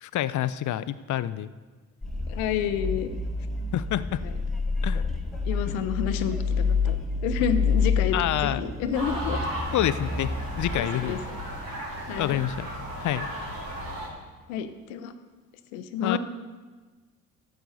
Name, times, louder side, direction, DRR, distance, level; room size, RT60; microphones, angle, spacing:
voice 1, 0.0-1.5 3.7-4.2 4.8-5.1 8.1-8.6 9.7-10.3 10.6-11.2 12.2-12.7 13.0-13.3 16.0-16.2, left 12 dB, 50° left, 15 dB, 0.6 m, -27 dB
sound 1, 2.0-10.8, left 4 dB, ahead, 2.0 m, -28 dB
voice 2, 2.3-3.1 4.2-4.3 5.5-7.0 7.2-8.2 8.4-9.4 10.8-11.2 12.0-12.4 14.5-15.1 15.7-16.2, left 8 dB, 80° left, 10 dB, 0.8 m, -29 dB
sound 2, 8.9-14.1, equal, 55° right, 3.8 m, -35 dB
12.5 x 7.8 x 4.1 m, 1.3 s
hypercardioid pair, 50°, 40 cm